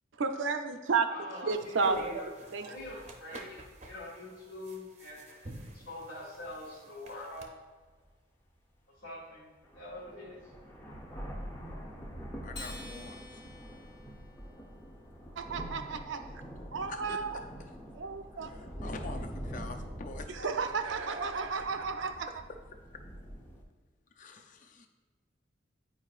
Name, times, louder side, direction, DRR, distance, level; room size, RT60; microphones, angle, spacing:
voice 1, 0.2-1.1 1.4-2.0 2.5-2.7 15.4-16.4 16.7-17.3 17.9-18.5 20.4-22.3, right 5 dB, 75° right, 7 dB, 0.5 m, -32 dB
voice 2, 1.0-2.3 2.6-7.5 9.0-9.5 9.7-10.5, left 1 dB, 80° left, -8 dB, 1.8 m, -44 dB
sound 1, 1.5-7.5, right 1 dB, 35° right, 0.6 m, -47 dB
sound 2, 7.1-7.2 7.8-7.9 9.2-9.3 9.6-23.6, equal, 15° left, 0.8 m, -44 dB
voice 3, 12.4-13.5 16.9-17.7 18.3-20.5 21.6-21.7 24.1-24.9, left 3 dB, 40° left, 6 dB, 0.5 m, -46 dB
Acoustic guitar, 12.5-15.2, left 2 dB, 55° left, 1.1 m, -49 dB
9.3 x 4.7 x 2.4 m, 1.4 s
head